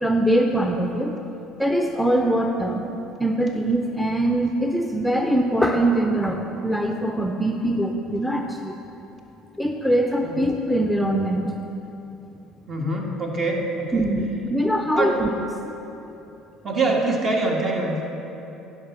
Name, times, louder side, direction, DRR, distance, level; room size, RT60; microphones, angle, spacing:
voice 1, 0.0-1.2 1.6-2.9 3.2-8.8 9.6-11.5 13.9-15.3, right 1 dB, ahead, 3 dB, 0.6 m, -22 dB
voice 2, 12.7-14.1 14.9-15.1 16.6-18.1, right 2 dB, 40° right, 0 dB, 1.6 m, -24 dB
11.0 x 4.9 x 5.9 m, 3.0 s
supercardioid pair, 75°, 0 cm